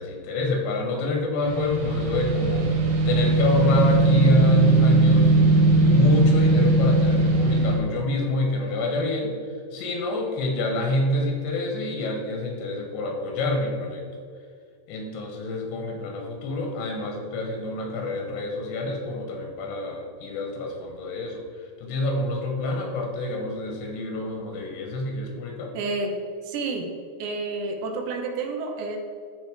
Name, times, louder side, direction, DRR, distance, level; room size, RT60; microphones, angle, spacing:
voice 1, 0.0-2.8 3.1-5.5 5.8-9.4 9.7-14.0 14.9-21.4 21.8-25.7, left 2 dB, 85° left, 2 dB, 3.5 m, -27 dB
sound 1, 1.4-7.8, right 2 dB, 75° right, 3.1 m, -19 dB
voice 2, 25.7-26.1 26.4-26.9 27.2-29.0, right 3 dB, 90° right, 2 dB, 3.2 m, -29 dB
11.5 x 4.0 x 4.9 m, 2.1 s
omnidirectional pair, 4.9 m